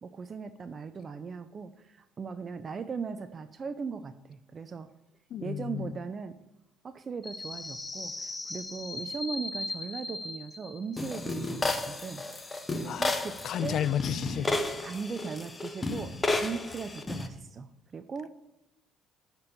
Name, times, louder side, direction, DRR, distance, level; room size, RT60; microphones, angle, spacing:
voice 1, 0.0-4.9 5.4-6.4 6.8-12.6 12.8-13.4 13.6-13.8 14.8-18.3, right 5 dB, 35° right, 0.4 m, -39 dB
voice 2, 5.3-5.9 12.8-14.5, left 10 dB, 60° left, 0.3 m, -32 dB
sound 1, 7.2-17.3, left 2 dB, 20° left, 0.8 m, -34 dB
10.5 x 4.4 x 6.7 m
cardioid pair, 105°, 0 cm